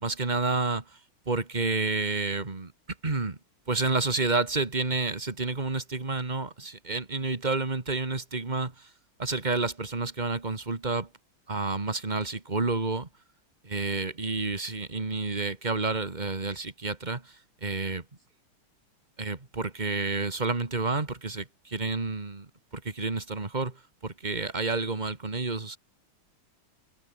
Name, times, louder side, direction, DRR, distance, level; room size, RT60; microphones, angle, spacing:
voice 1, 0.0-0.8 1.3-2.7 3.0-3.4 3.7-8.7 9.2-11.1 11.5-13.1 13.6-17.2 17.6-18.0 19.2-22.5 22.7-23.7 24.0-25.8, right 3 dB, 20° right, 2.2 m, -29 dB
omnidirectional pair, 2.3 m